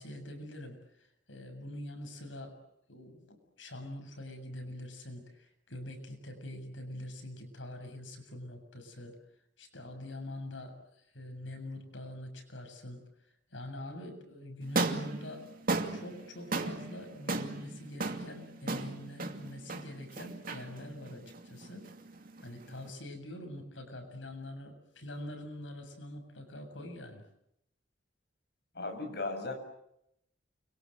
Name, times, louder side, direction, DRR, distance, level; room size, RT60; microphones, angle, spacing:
voice 1, 0.0-2.6 2.9-9.1 9.6-10.8 11.1-13.0 13.5-15.5 15.9-21.9 22.4-27.2, left 1 dB, 90° left, 6 dB, 7.3 m, -44 dB
sound 1, 14.6-22.9, right 3 dB, 50° right, 2.6 m, -36 dB
voice 2, 28.7-29.5, left 3 dB, 60° left, 5 dB, 7.3 m, -36 dB
29.5 x 23.5 x 8.0 m, 0.79 s
head